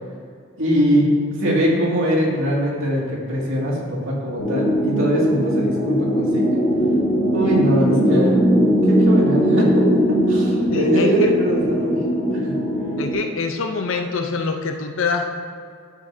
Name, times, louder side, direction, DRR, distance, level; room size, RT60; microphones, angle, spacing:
voice 1, 0.6-1.1 1.4-6.5 7.3-8.4 8.9-10.0 10.3-12.6, equal, 75° right, -4 dB, 2.3 m, -21 dB
sound 1, 4.4-13.1, equal, 30° left, 1.8 m, -19 dB
voice 2, 10.7-11.3 13.0-15.4, left 4 dB, 75° left, 4 dB, 0.7 m, -25 dB
12.0 x 7.3 x 2.7 m, 2.2 s
head